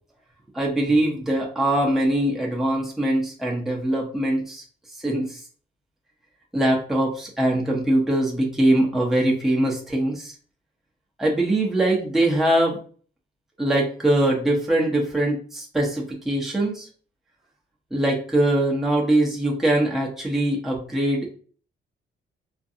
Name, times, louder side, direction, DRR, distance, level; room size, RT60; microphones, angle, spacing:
voice 1, 0.5-4.6 5.0-5.4 6.5-10.3 11.2-12.8 13.6-16.9 17.9-21.3, right 1 dB, ahead, -3 dB, 0.8 m, -22 dB
2.5 x 2.2 x 2.7 m, 0.42 s
cardioid pair, 90°, 20 cm